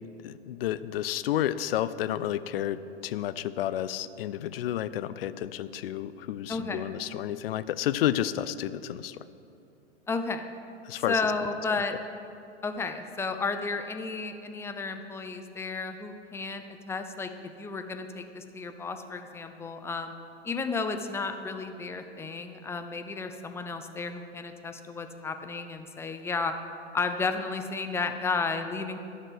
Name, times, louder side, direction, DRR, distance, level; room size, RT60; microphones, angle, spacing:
voice 1, 0.2-9.2 10.8-11.2, left 12 dB, 60° left, 15 dB, 0.5 m, -31 dB
voice 2, 6.5-6.8 10.1-10.4 11.1-12.0 12.6-17.3 17.6-20.1 20.4-26.5 26.9-29.0, left 4 dB, 10° left, 7 dB, 0.5 m, -32 dB
11.0 x 6.6 x 7.8 m, 2.7 s
figure-of-eight pair, 100°, 33 cm